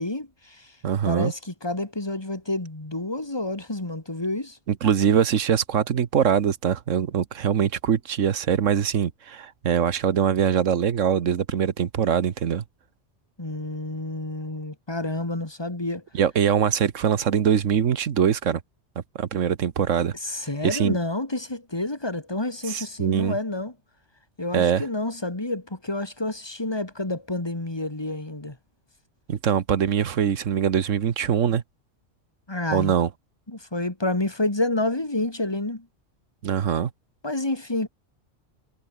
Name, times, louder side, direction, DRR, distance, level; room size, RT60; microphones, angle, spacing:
voice 1, 0.0-0.7 1.0-4.6 13.4-16.0 20.2-23.7 24.4-28.6 32.5-32.9 33.5-35.9 37.2-37.9, left 2 dB, 20° left, 2.4 m, -29 dB
voice 2, 0.8-1.3 4.7-12.6 16.1-18.6 19.1-20.1 20.6-21.0 22.7-23.4 24.5-24.8 29.3-31.6 32.7-33.1 36.4-36.9, right 8 dB, 85° right, 1.5 m, -23 dB
omnidirectional pair, 1.3 m